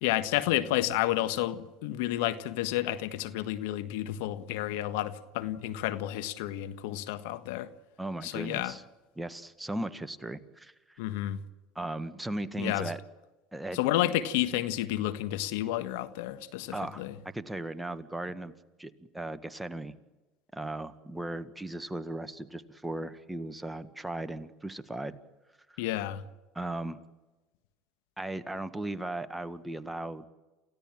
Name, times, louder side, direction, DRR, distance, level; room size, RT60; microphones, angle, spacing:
voice 1, 0.0-7.7 8.2-8.7 11.0-11.4 12.6-12.9 13.7-17.1 25.8-26.2, left 14 dB, 80° left, 1.5 m, -31 dB
voice 2, 8.0-8.8 9.2-11.0 11.7-13.0 13.5-13.8 16.7-18.5 18.8-19.9 20.5-25.2 25.7-25.8 26.5-27.0 28.2-30.3, right 1 dB, 5° right, 1.7 m, -37 dB
28.5 x 16.0 x 9.0 m
supercardioid pair, 95°, 0 cm